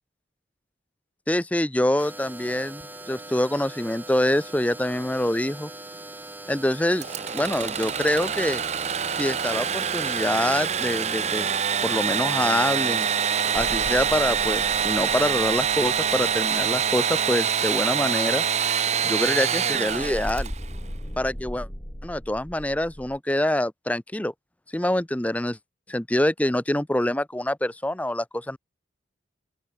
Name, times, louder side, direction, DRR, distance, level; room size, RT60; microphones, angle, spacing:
voice 1, 1.3-2.8 3.1-5.7 6.5-8.6 9.1-11.5 11.8-13.1 13.5-18.4 19.0-20.5 21.2-21.7 22.0-24.3 24.7-25.6 25.9-28.6, left 1 dB, 10° left, 0.6 m, -25 dB
sound 1, 2.0-15.3, right 2 dB, 10° right, 3.7 m, -41 dB
Engine / Sawing, 7.0-20.7, right 7 dB, 35° right, 0.7 m, -25 dB
sound 2, 13.5-17.1 19.9-23.2, equal, 25° left, 6.1 m, -38 dB
open air
head